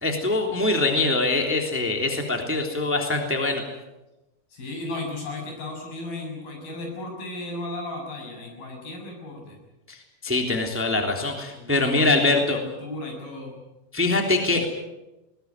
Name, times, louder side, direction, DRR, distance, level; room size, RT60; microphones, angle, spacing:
voice 1, 0.0-3.6 9.9-12.6 13.9-14.7, left 2 dB, 5° right, 3 dB, 2.6 m, -23 dB
voice 2, 4.5-9.6 11.5-13.6, left 2 dB, 75° left, 2 dB, 8.8 m, -35 dB
21.0 x 19.5 x 9.6 m, 1.0 s
omnidirectional pair, 4.2 m